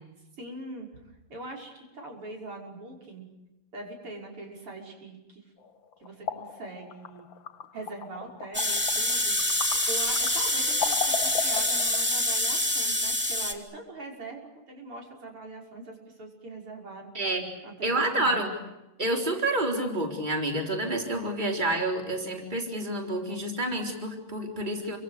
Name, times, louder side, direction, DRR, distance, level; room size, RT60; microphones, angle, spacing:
voice 1, 0.4-0.9 1.3-3.3 3.7-5.4 6.0-7.3 7.7-9.5 9.9-14.4 14.7-17.1 17.6-18.4, right 2 dB, 85° right, 1 dB, 6.8 m, -42 dB
sound 1, 5.6-12.2, left 8 dB, 65° left, 2.1 m, -37 dB
sound 2, 8.5-13.5, left 1 dB, 5° right, 2.7 m, -26 dB
voice 2, 17.1-17.5 17.8-18.5 19.0-25.0, right 1 dB, 20° right, 2 dB, 4.2 m, -28 dB
29.0 x 26.0 x 6.7 m, 0.97 s
omnidirectional pair, 2.4 m